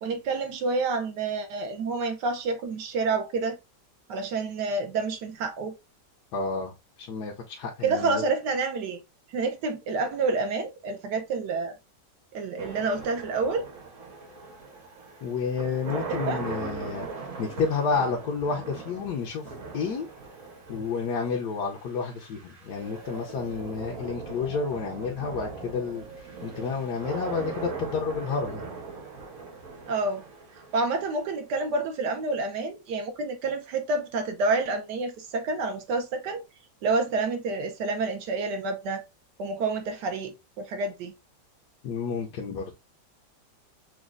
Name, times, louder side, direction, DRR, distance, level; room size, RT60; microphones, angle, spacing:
voice 1, 0.0-3.6 4.1-5.7 7.8-9.0 9.3-11.7 12.3-13.6 16.3-16.4 29.9-30.2 30.7-36.4 36.8-39.0 39.4-41.1, right 3 dB, 70° right, 1.3 m, -28 dB
voice 2, 6.3-8.2 15.2-17.1 17.4-19.4 19.7-20.1 20.7-28.6 41.8-42.8, left 5 dB, 65° left, 1.1 m, -30 dB
sound 1, 12.6-31.6, right 4 dB, 45° right, 1.3 m, -39 dB
6.1 x 2.3 x 2.4 m
omnidirectional pair, 2.1 m